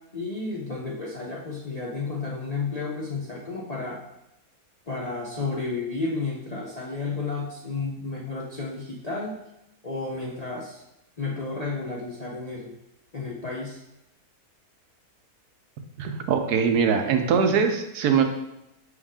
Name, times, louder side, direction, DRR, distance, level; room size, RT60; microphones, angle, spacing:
voice 1, 0.1-4.0 4.9-9.4 9.8-10.8 11.2-12.7 13.1-13.8, left 3 dB, 40° left, -3 dB, 0.6 m, -32 dB
voice 2, 16.0-18.2, right 6 dB, 75° right, 5 dB, 1.2 m, -22 dB
6.2 x 4.9 x 3.6 m, 0.87 s
omnidirectional pair, 1.7 m